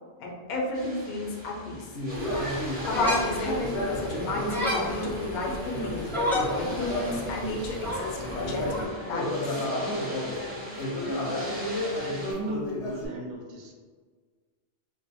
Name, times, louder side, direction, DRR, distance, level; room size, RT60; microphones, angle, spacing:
voice 1, 0.2-1.9 2.8-6.1 6.5-9.6, left 2 dB, 55° left, -2 dB, 0.5 m, -32 dB
sound 1, 0.7-12.3, right 1 dB, 35° right, 0.9 m, -43 dB
Conversation, 1.9-7.7 8.2-13.1, left 1 dB, 75° left, 0.9 m, -32 dB
sound 2, 2.1-8.8, left 1 dB, 5° left, 0.3 m, -33 dB
voice 2, 11.8-13.7, right 1 dB, 80° right, -1 dB, 0.9 m, -39 dB
2.4 x 2.1 x 2.7 m, 1.5 s
omnidirectional pair, 1.2 m